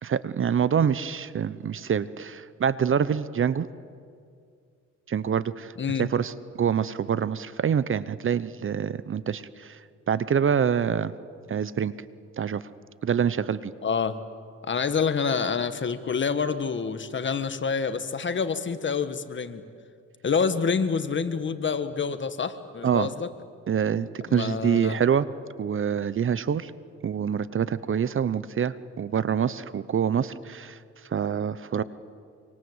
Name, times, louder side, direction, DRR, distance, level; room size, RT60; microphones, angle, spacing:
voice 1, 0.0-3.7 5.1-5.7 6.0-9.8 10.1-11.1 11.5-11.9 12.4-12.6 13.0-13.7 22.8-23.1 23.7-25.3 25.6-26.7 27.0-30.8 31.1-31.8, right 7 dB, 45° right, 17 dB, 0.9 m, -26 dB
voice 2, 5.8-6.1 13.8-14.2 14.7-19.6 20.2-23.3 24.3-25.0, left 5 dB, 40° left, 11 dB, 1.6 m, -27 dB
25.5 x 25.0 x 8.1 m, 2.3 s
cardioid pair, 90°, 30 cm